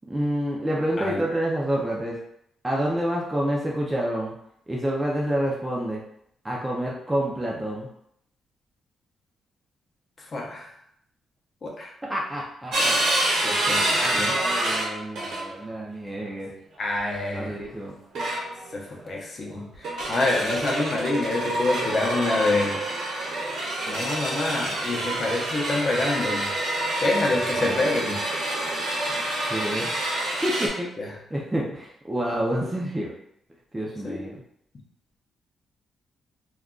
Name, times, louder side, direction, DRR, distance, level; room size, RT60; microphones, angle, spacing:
voice 1, 0.1-2.2 2.6-4.3 4.7-6.0 6.4-7.9 12.0-13.0 14.3-16.5 17.3-17.9 29.4-30.9 31.3-33.1 33.7-34.4, right 1 dB, 10° right, -3 dB, 0.4 m, -28 dB
voice 2, 10.2-10.7 11.6-11.9 13.3-14.4 16.8-17.6 18.7-22.8 23.9-26.6 27.0-28.2 31.0-31.1 34.0-34.3, left 2 dB, 35° left, 0 dB, 0.6 m, -27 dB
sound 1, 12.7-15.6 16.9-17.1 18.1-18.7 19.7-30.7, right 1 dB, 70° right, 0.9 m, -27 dB
2.3 x 2.2 x 3.6 m, 0.72 s
cardioid pair, 145°, 0 cm